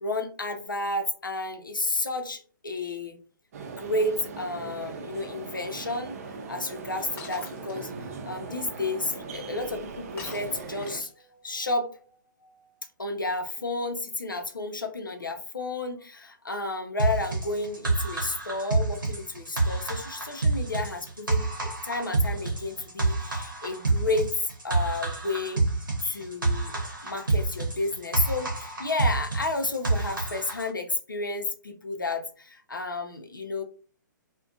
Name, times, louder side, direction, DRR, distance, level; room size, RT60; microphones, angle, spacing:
voice 1, 0.0-3.2 3.8-6.1 6.5-7.9 8.2-11.1 11.4-12.0 12.4-12.5 13.0-25.6 26.0-26.7 27.0-33.6, left 2 dB, 85° left, 6 dB, 0.6 m, -31 dB
sound 1, 3.5-11.0, right 4 dB, 50° right, 0.5 m, -39 dB
Shatter, 7.2-7.7 10.2-11.2, left 3 dB, 20° left, 0.8 m, -43 dB
sound 2, 17.0-30.7, right 3 dB, 85° right, 0.8 m, -28 dB
2.5 x 2.1 x 2.5 m, 0.39 s
figure-of-eight pair, 125°, 11 cm